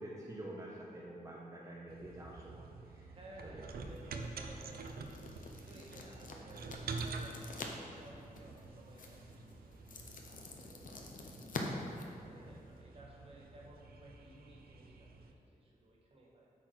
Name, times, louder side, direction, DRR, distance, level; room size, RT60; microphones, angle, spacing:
voice 1, 0.0-3.1 3.4-3.7, right 1 dB, 20° right, -5 dB, 0.8 m, -48 dB
sound 1, 1.9-15.3, right 3 dB, 90° right, 0.6 m, -48 dB
voice 2, 3.1-5.0 5.5-9.9 10.3-16.5, right 1 dB, 40° right, -3 dB, 1.6 m, -57 dB
sound 2, 3.8-12.8, left 3 dB, 65° left, 0.9 m, -48 dB
8.7 x 4.3 x 6.1 m, 2.5 s
wide cardioid pair, 150°, 15 cm